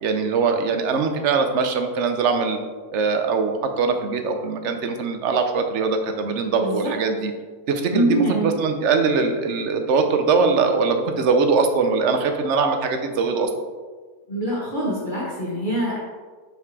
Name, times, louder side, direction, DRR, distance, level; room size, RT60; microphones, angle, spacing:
voice 1, 0.0-2.6 2.9-7.3 7.7-13.5, right 4 dB, 60° right, 6 dB, 0.9 m, -22 dB
voice 2, 7.9-8.6 14.3-16.0, right 1 dB, 35° left, -7 dB, 1.3 m, -24 dB
5.5 x 4.6 x 4.7 m, 1.4 s
omnidirectional pair, 1.6 m